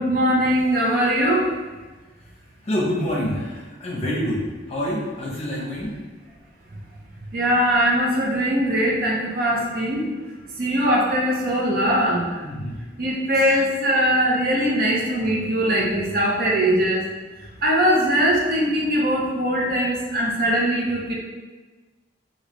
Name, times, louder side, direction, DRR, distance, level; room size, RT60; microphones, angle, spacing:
voice 1, 0.0-1.5 7.3-10.0 10.6-12.3 13.0-17.1 17.6-21.1, equal, 50° right, -2 dB, 0.6 m, -21 dB
voice 2, 2.6-5.9 12.4-12.7 13.2-13.3, equal, 35° left, -4 dB, 0.7 m, -27 dB
3.2 x 2.8 x 2.9 m, 1.3 s
head